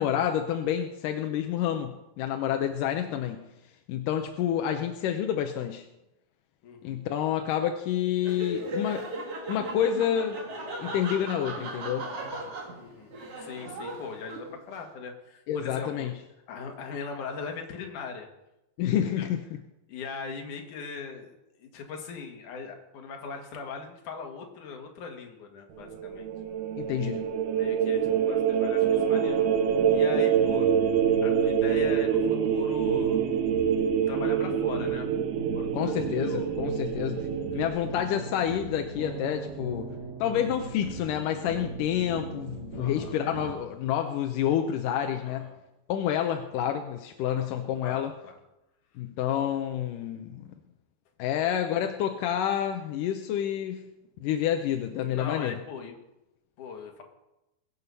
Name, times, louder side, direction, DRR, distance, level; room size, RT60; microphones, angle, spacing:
voice 1, 0.0-3.5 3.9-5.9 6.8-9.0 9.5-10.4 10.8-12.1 15.5-16.1 18.8-19.4 26.8-27.3 35.7-37.3 37.5-39.9 40.2-45.5 45.9-48.1 49.0-50.4 51.2-53.8 54.2-55.6, left 10 dB, 75° left, 5 dB, 2.1 m, -28 dB
voice 2, 6.6-7.0 12.7-15.9 16.5-18.3 18.9-19.3 19.9-26.3 27.5-29.4 29.9-30.7 31.2-33.3 34.1-35.1 35.5-36.5 37.5-37.6 42.8-43.1 45.2-45.6 47.2-47.5 47.8-48.4 55.1-56.0 56.6-57.0, left 5 dB, 60° left, 3 dB, 3.0 m, -40 dB
Laughter, 8.2-14.7, right 1 dB, 45° right, 2.7 m, -37 dB
sound 1, 25.8-37.7, right 8 dB, 90° right, 3.3 m, -26 dB
sound 2, 28.8-43.5, right 3 dB, 30° right, 2.7 m, -39 dB
21.5 x 8.4 x 5.5 m, 0.94 s
omnidirectional pair, 4.3 m